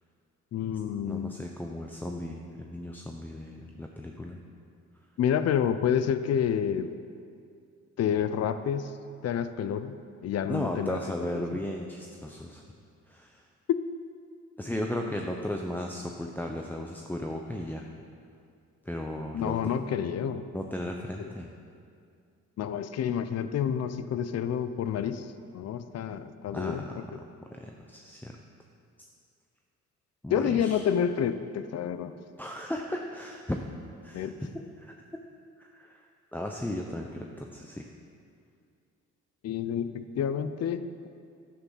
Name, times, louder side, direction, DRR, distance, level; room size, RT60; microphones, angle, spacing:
voice 1, 0.5-1.3 5.2-6.9 8.0-8.9 9.2-10.0 10.2-11.4 13.7-13.8 19.3-20.4 21.2-21.3 22.6-25.3 25.5-26.8 30.3-32.1 34.1-34.3 39.4-40.9, left 8 dB, 55° left, 11 dB, 0.6 m, -29 dB
voice 2, 1.0-4.4 10.4-12.6 13.1-13.4 14.6-17.9 18.8-19.9 20.5-21.5 26.5-27.0 27.5-28.4 30.2-30.9 32.4-33.6 34.0-34.3 34.8-34.9 35.6-37.9, left 1 dB, 5° left, 1 dB, 0.7 m, -35 dB
11.0 x 8.7 x 5.7 m, 2.4 s
cardioid pair, 90°, 30 cm